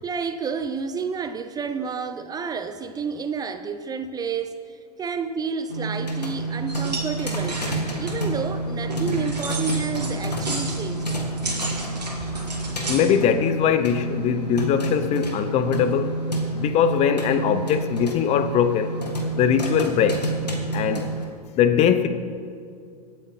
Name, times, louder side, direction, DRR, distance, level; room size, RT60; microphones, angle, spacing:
voice 1, 0.0-7.6 8.0-11.1, right 5 dB, 20° right, 9 dB, 0.5 m, -30 dB
sound 1, 5.7-21.3, right 2 dB, 85° left, 1.7 m, -29 dB
sound 2, 6.7-13.0, right 2 dB, 85° right, 2.3 m, -33 dB
voice 2, 12.9-16.1 16.5-18.9 19.4-20.3 20.7-21.1 21.6-22.1, left 8 dB, 35° left, 10 dB, 0.7 m, -21 dB
24.5 x 8.5 x 3.2 m, 2.3 s
figure-of-eight pair, 90°, 20 cm